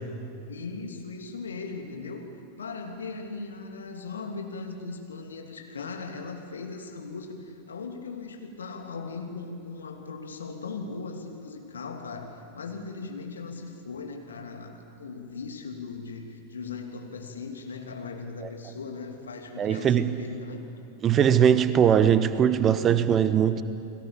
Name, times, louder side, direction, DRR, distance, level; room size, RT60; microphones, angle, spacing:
voice 1, 0.5-2.3 2.6-20.7, left 4 dB, 70° left, 3 dB, 2.7 m, -38 dB
voice 2, 19.6-20.1 21.0-23.6, right 8 dB, 25° right, 13 dB, 1.0 m, -21 dB
30.0 x 21.5 x 7.1 m, 2.6 s
figure-of-eight pair, 90°, 0 cm